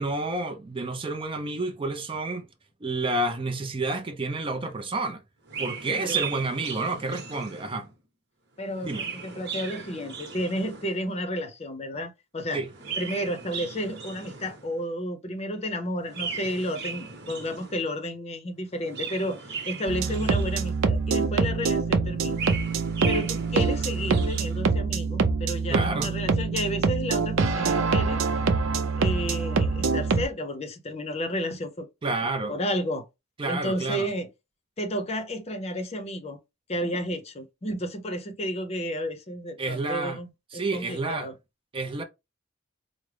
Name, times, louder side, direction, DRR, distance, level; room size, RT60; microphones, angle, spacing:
voice 1, 0.0-2.5 2.8-5.2 5.6-7.9 8.8-9.1 12.5-12.7 25.7-26.1 32.0-32.6 33.4-34.1 39.6-40.2 40.5-41.3 41.7-42.0, right 2 dB, 25° right, 0.4 m, -29 dB
Chirp tweet, 5.4-7.9 8.6-11.1 12.6-14.8 16.0-17.9 18.7-21.0 22.1-24.6, right 6 dB, 60° right, 1.0 m, -37 dB
voice 2, 5.9-6.3 8.6-12.6 13.0-22.5 23.1-28.2 29.0-31.9 32.5-33.0 33.5-34.3 34.8-36.4 36.7-41.3, equal, 30° left, 0.6 m, -32 dB
sound 1, 19.9-30.2, right 4 dB, 85° right, 0.5 m, -25 dB
4.8 x 2.1 x 3.2 m
head